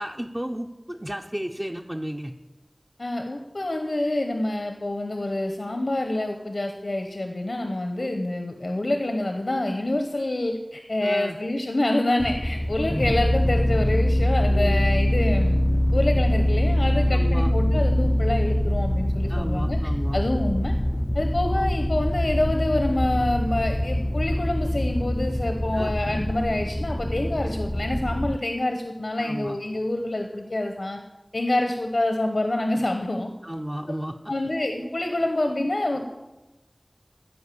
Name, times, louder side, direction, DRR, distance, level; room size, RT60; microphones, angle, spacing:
voice 1, 0.0-2.3 8.0-8.1 11.0-11.4 14.5-14.8 17.1-17.5 19.3-20.2 25.7-25.9 29.2-29.6 33.4-34.3, equal, 25° right, 2 dB, 0.6 m, -33 dB
voice 2, 3.0-15.6 15.9-19.8 20.1-20.7 21.1-31.0 31.3-33.3 34.3-36.1, left 1 dB, 90° left, 4 dB, 0.9 m, -27 dB
sound 1, 12.2-28.4, left 1 dB, 20° left, 0.3 m, -24 dB
14.0 x 5.2 x 8.4 m, 1.0 s
wide cardioid pair, 45°, 0 cm